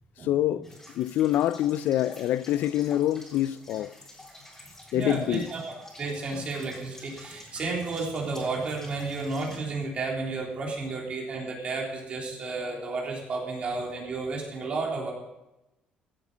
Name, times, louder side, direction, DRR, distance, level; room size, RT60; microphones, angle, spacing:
voice 1, 0.2-0.7 0.9-3.9 4.9-5.5, left 12 dB, 70° left, 0.4 m, -25 dB
sound 1, 0.6-9.6, left 1 dB, 10° left, 3.8 m, -50 dB
voice 2, 4.9-15.1, right 3 dB, 40° right, 3.6 m, -32 dB
15.5 x 8.1 x 5.1 m
cardioid pair, 125°, 3 cm